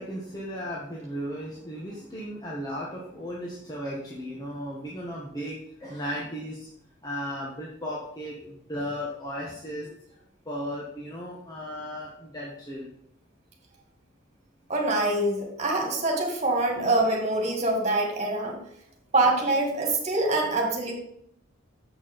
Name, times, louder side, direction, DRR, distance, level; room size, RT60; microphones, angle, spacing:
voice 1, 0.0-6.7 7.0-10.2 10.4-12.9, equal, 20° left, -4 dB, 1.3 m, -35 dB
voice 2, 14.7-18.6 19.1-20.9, right 2 dB, 35° right, 1 dB, 2.1 m, -25 dB
7.3 x 6.3 x 5.3 m, 0.71 s
head